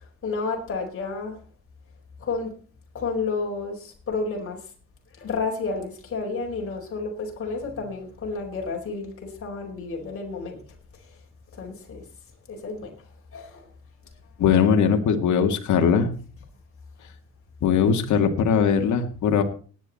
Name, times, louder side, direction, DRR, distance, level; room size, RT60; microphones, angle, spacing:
voice 1, 0.0-1.4 2.2-2.5 2.9-4.7 5.1-10.6 10.9-11.2 11.5-12.1 12.5-13.0 13.3-13.7, left 4 dB, 45° left, 4.7 m, -31 dB
voice 2, 14.4-16.1 17.6-19.4, left 7 dB, 75° left, 2.1 m, -20 dB
18.5 x 9.5 x 4.2 m
cardioid pair, 90°, 30 cm